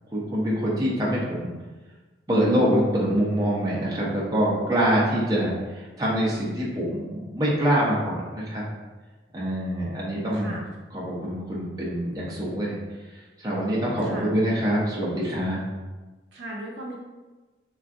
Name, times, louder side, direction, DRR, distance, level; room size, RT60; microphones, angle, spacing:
voice 1, 0.1-1.5 2.3-8.6 9.3-10.5 10.9-12.8 13.4-15.6, equal, 20° right, -6 dB, 0.5 m, -25 dB
voice 2, 16.3-17.0, right 1 dB, 70° right, -2 dB, 0.6 m, -37 dB
3.5 x 2.2 x 2.5 m, 1.2 s
head